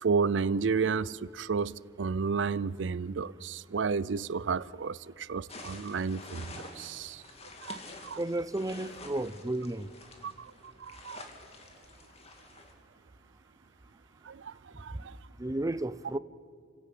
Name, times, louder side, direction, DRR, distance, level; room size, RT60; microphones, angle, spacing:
voice 1, 0.0-7.2 7.6-8.2 10.2-10.5 10.8-11.2 14.3-14.5 14.8-15.1, right 5 dB, 85° right, 0.5 m, -32 dB
sound 1, 5.5-12.7, left 2 dB, 35° left, 2.7 m, -48 dB
voice 2, 8.2-9.9 15.4-16.2, right 1 dB, 20° right, 0.6 m, -32 dB
29.0 x 16.5 x 8.5 m
head